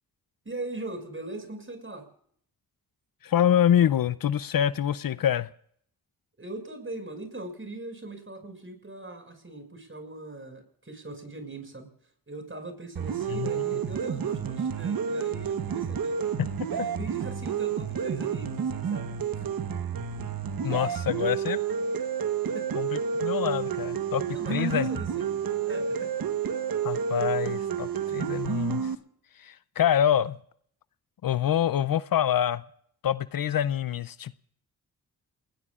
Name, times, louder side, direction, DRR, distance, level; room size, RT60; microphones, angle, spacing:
voice 1, 0.4-2.1 6.4-11.9 12.3-16.2 16.7-19.1 19.4-19.5 22.4-22.7 24.1-26.1, right 2 dB, 35° right, 6 dB, 6.5 m, -40 dB
voice 2, 3.2-5.5 13.3-13.6 16.8-16.9 20.6-21.6 22.7-24.2 24.5-24.9 26.8-28.9 29.4-30.4 31.2-32.6 33.0-34.4, left 10 dB, 65° left, 17 dB, 0.6 m, -26 dB
sound 1, 13.0-29.0, right 7 dB, 65° right, 1.2 m, -30 dB
29.0 x 19.5 x 2.5 m, 0.64 s
cardioid pair, 45°, 37 cm